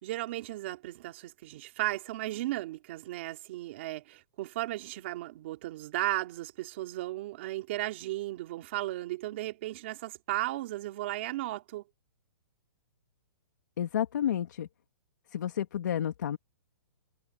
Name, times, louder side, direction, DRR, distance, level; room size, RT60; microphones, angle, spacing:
voice 1, 0.0-11.8, right 16 dB, 30° right, 2.8 m, -35 dB
voice 2, 13.8-14.7 15.3-16.4, left 10 dB, 50° left, 2.8 m, -30 dB
hypercardioid pair, 180°, 12 cm